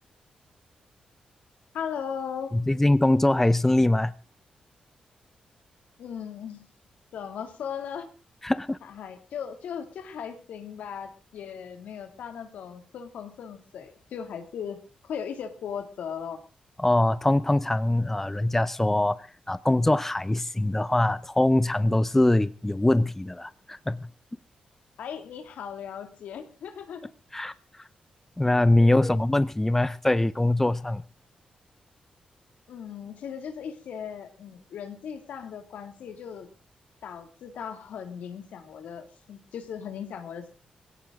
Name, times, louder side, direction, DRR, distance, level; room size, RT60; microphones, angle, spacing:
voice 1, 1.7-2.6 6.0-6.6 7.1-8.1 8.8-16.4 25.0-27.1 28.8-29.2 32.7-36.5 37.0-40.5, left 7 dB, 85° left, 2.6 m, -38 dB
voice 2, 2.5-4.1 8.4-8.8 16.8-24.1 27.3-27.5 28.4-31.0, left 1 dB, 10° left, 0.7 m, -23 dB
19.0 x 17.0 x 3.8 m
cardioid pair, 75°, 3 cm